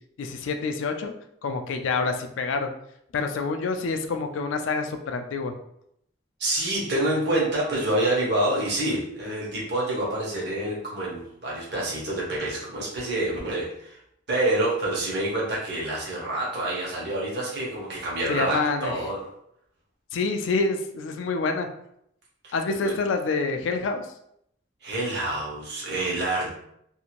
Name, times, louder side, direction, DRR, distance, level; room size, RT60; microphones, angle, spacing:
voice 1, 0.2-1.1 1.4-2.7 3.1-5.5 18.3-18.9 20.1-21.7 22.5-24.1, left 4 dB, 80° left, 6 dB, 0.4 m, -27 dB
voice 2, 6.4-14.0 14.3-19.2 22.8-22.9 24.8-26.5, right 1 dB, 60° right, -4 dB, 1.0 m, -27 dB
2.7 x 2.5 x 2.9 m, 0.73 s
head